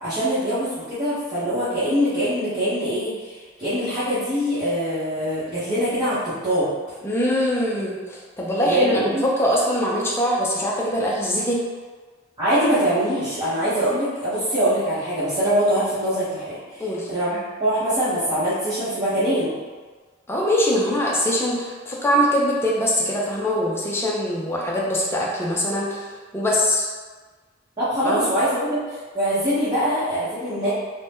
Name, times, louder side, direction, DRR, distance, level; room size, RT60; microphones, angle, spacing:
voice 1, 0.0-6.7 8.6-9.2 12.4-19.5 27.8-28.8 29.1-30.7, equal, 25° right, -16 dB, 1.0 m, -23 dB
voice 2, 7.0-11.6 16.8-17.1 20.3-26.9 28.0-28.3, equal, 10° left, -4 dB, 0.5 m, -23 dB
2.7 x 2.2 x 3.4 m, 1.4 s
head